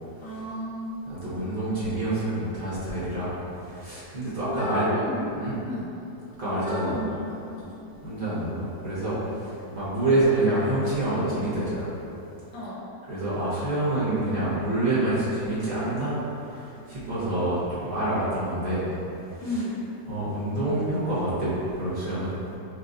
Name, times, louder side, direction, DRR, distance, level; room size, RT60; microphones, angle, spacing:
voice 1, 0.2-1.2 4.4-5.9 6.5-7.9 9.7-9.8 12.5-12.8 19.4-19.8, left 1 dB, 90° left, -8 dB, 1.6 m, -34 dB
voice 2, 1.1-3.3 3.6-4.8 5.4-5.5 6.4-7.0 8.0-11.9 13.1-18.8 19.3-19.6 20.1-22.4, right 1 dB, 35° right, -12 dB, 0.9 m, -27 dB
4.6 x 2.5 x 2.5 m, 2.9 s
omnidirectional pair, 1.9 m